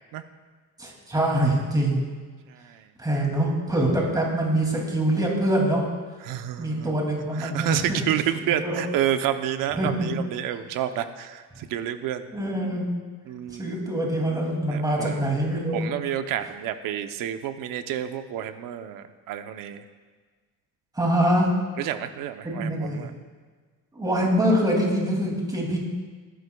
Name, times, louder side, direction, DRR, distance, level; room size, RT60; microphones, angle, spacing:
voice 1, 0.8-2.0 3.0-5.8 6.6-8.0 8.4-8.8 9.8-10.1 12.3-12.9 13.5-15.9 21.0-21.5 22.4-23.1 23.9-25.8, right 1 dB, 10° right, -1 dB, 2.6 m, -24 dB
voice 2, 2.5-2.9 6.2-6.9 7.3-12.2 13.3-13.7 14.7-15.2 15.7-19.8 21.8-23.1, right 11 dB, 75° right, 9 dB, 0.8 m, -29 dB
21.0 x 11.5 x 2.3 m, 1.5 s
cardioid pair, 135°, 33 cm